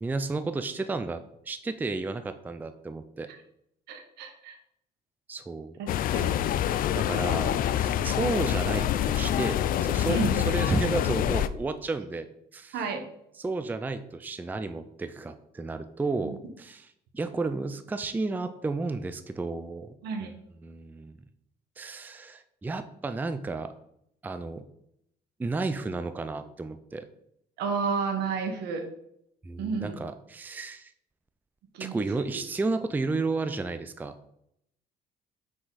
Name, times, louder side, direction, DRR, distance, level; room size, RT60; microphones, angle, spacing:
voice 1, 0.0-3.3 5.3-5.8 6.1-12.3 12.5-12.9 13.4-16.9 17.1-19.9 20.2-20.3 20.6-21.1 21.8-23.7 24.2-24.6 25.4-27.1 29.4-30.9 31.8-34.1, right 3 dB, 10° right, 10 dB, 0.4 m, -32 dB
voice 2, 3.9-4.6 5.8-6.4 10.1-10.5 12.7-13.0 16.2-16.4 20.0-20.3 27.6-28.8 29.6-30.0 31.7-32.0, right 5 dB, 80° right, 5 dB, 1.3 m, -31 dB
sound 1, 5.9-11.5, left 11 dB, 55° left, 0.4 m, -26 dB
6.0 x 5.0 x 4.1 m, 0.75 s
cardioid pair, 110°, 17 cm